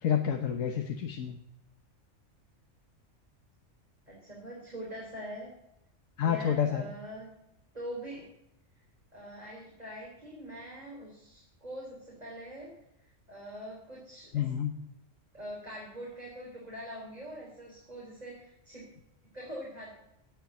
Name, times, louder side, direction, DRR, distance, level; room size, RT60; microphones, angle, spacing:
voice 1, 0.0-1.4 6.2-6.8 14.3-14.7, left 8 dB, 90° left, 5 dB, 1.4 m, -29 dB
voice 2, 4.1-5.5 6.2-7.3 7.7-8.3 9.1-12.7 13.3-14.5 15.3-18.8 19.3-19.9, equal, 30° right, -3 dB, 3.9 m, -43 dB
17.5 x 7.3 x 7.2 m, 0.82 s
omnidirectional pair, 1.3 m